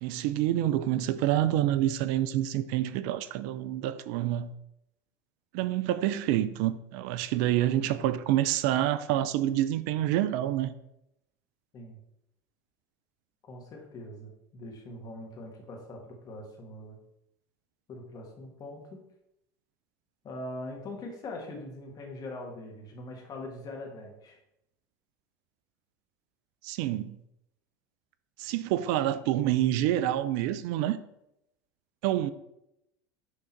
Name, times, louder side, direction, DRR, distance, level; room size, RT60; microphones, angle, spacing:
voice 1, 0.0-4.5 5.5-10.7 26.6-27.2 28.4-31.0 32.0-32.3, right 13 dB, 65° right, 0.4 m, -27 dB
voice 2, 13.4-17.0 17.9-19.0 20.2-24.4, left 1 dB, 40° left, 1.8 m, -42 dB
6.3 x 3.8 x 4.5 m
hypercardioid pair, 85°, 10 cm